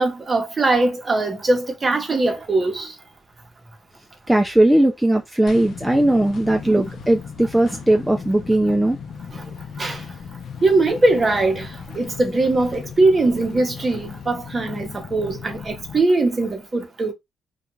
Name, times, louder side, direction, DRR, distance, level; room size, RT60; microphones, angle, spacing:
voice 1, 0.0-2.9 6.6-6.7 9.8-10.0 10.6-11.7 12.0-17.1, right 2 dB, 30° right, 0.9 m, -20 dB
voice 2, 4.3-9.0, right 1 dB, 5° right, 0.4 m, -18 dB
sound 1, 5.5-16.0, left 6 dB, 60° left, 0.6 m, -37 dB
2.4 x 2.3 x 3.0 m
cardioid pair, 90°, 0 cm